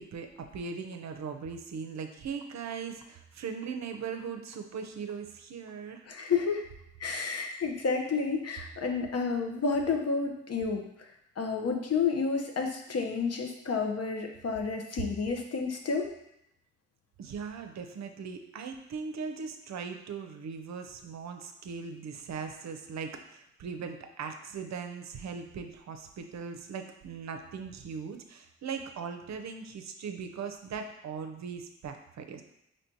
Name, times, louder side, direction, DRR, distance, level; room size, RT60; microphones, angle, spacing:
voice 1, 0.0-6.1 17.2-32.4, right 6 dB, 60° right, 5 dB, 0.6 m, -39 dB
voice 2, 6.1-6.6 7.0-11.1 11.4-16.1, left 5 dB, 50° left, 3 dB, 0.8 m, -30 dB
4.3 x 3.2 x 2.7 m, 0.80 s
supercardioid pair, 45°, 32 cm